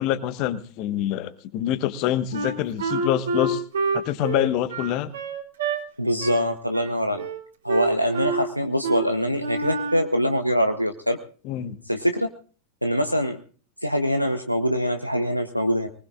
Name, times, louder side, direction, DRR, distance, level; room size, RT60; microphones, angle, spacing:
voice 1, 0.0-3.6 3.9-5.1 11.4-11.8, left 12 dB, 40° left, 12 dB, 1.3 m, -26 dB
Wind instrument woodwind instrument, 2.3-5.8 6.2-6.5 6.7-7.4 7.7-8.4 8.8-9.1 9.4-10.1, right 3 dB, 65° right, 3.4 m, -27 dB
voice 2, 6.0-7.3 7.6-11.2 11.9-12.3 12.8-13.4 13.8-15.9, equal, 90° left, 6 dB, 0.9 m, -23 dB
24.0 x 19.5 x 2.5 m, 0.41 s
figure-of-eight pair, 90°, 0 cm